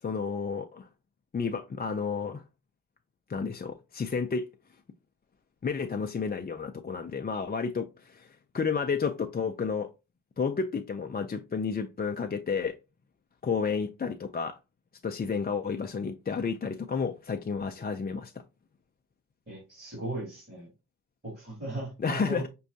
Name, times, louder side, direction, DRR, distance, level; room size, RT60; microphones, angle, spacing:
voice 1, 0.0-0.9 1.3-2.4 3.3-4.5 5.6-9.9 10.4-12.8 13.4-14.6 15.0-18.3 22.0-22.5, left 5 dB, 25° left, 0.4 m, -31 dB
voice 2, 19.5-20.7 21.2-22.5, right 1 dB, 25° right, 2.5 m, -37 dB
6.1 x 2.3 x 2.6 m
cardioid pair, 70°, 38 cm